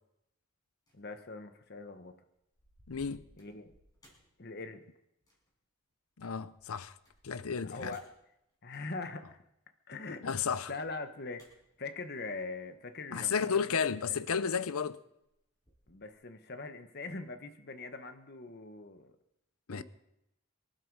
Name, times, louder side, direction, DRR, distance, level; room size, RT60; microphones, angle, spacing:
voice 1, 0.9-2.2 3.4-3.7 4.4-4.8 7.7-8.1 8.6-9.3 9.9-10.3 10.7-11.5 11.8-13.7 14.1-14.2 15.9-19.1 19.7-19.8, left 3 dB, 50° left, 1.1 m, -42 dB
sound 1, 0.9-1.2 1.6-2.0 2.3-4.9 5.2-5.6 6.4-9.0 10.2-12.9 14.0-14.9 15.2-16.1, equal, 15° left, 4.9 m, -65 dB
voice 2, 2.9-3.2 6.2-6.9 7.2-7.9 10.2-10.7 13.1-15.0 19.7-19.8, left 6 dB, 85° left, 0.7 m, -32 dB
24.0 x 12.0 x 4.8 m
head